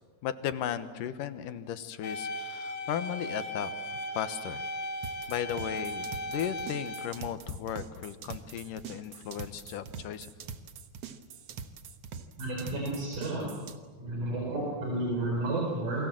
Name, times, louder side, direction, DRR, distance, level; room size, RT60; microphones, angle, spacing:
voice 1, 0.2-3.7 4.1-4.7 5.3-10.3, left 10 dB, 80° left, 11 dB, 2.8 m, -36 dB
sound 1, 2.0-7.1, equal, 55° left, 3.4 m, -37 dB
sound 2, 5.0-13.8, right 6 dB, 60° right, 2.0 m, -43 dB
voice 2, 12.4-13.5 14.0-16.1, right 2 dB, 75° right, -2 dB, 6.2 m, -31 dB
29.0 x 23.5 x 7.7 m, 1.4 s
omnidirectional pair, 3.7 m